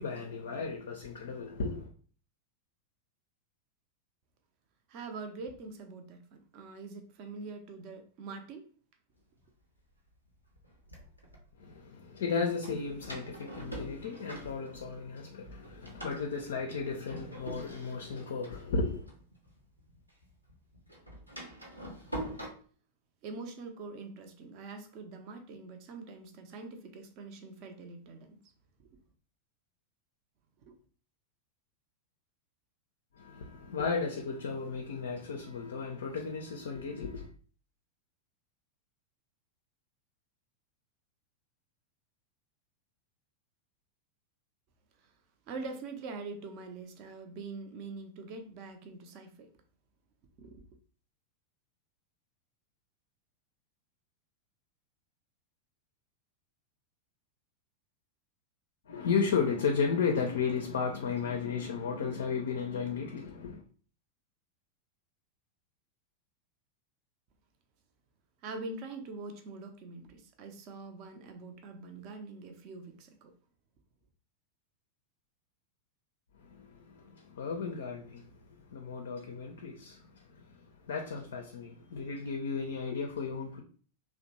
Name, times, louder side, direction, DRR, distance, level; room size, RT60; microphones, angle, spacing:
voice 1, 0.0-1.9 11.6-19.1 33.2-37.3 58.9-63.6 76.4-78.3 78.7-83.6, left 5 dB, 60° left, 0.4 m, -34 dB
voice 2, 4.9-8.7 23.2-28.4 30.6-30.7 45.5-49.5 50.4-50.6 68.4-73.3, right 3 dB, 40° right, 0.5 m, -44 dB
Door, 9.4-9.5 10.3-11.4 12.6-15.2 15.4-20.0 20.2-22.5, right 1 dB, 90° right, 0.6 m, -44 dB
2.8 x 2.0 x 2.8 m
figure-of-eight pair, 90°, 0 cm